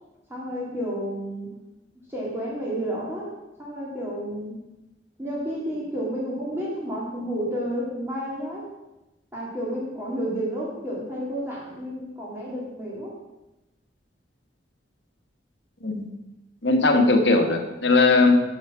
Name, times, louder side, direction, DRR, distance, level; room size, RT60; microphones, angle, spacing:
voice 1, 0.3-1.5 2.1-3.3 3.6-4.5 5.2-8.7 9.3-13.1, equal, 15° right, -5 dB, 2.0 m, -31 dB
voice 2, 16.6-18.3, left 3 dB, 70° left, 4 dB, 1.1 m, -19 dB
8.0 x 6.7 x 5.9 m, 0.99 s
head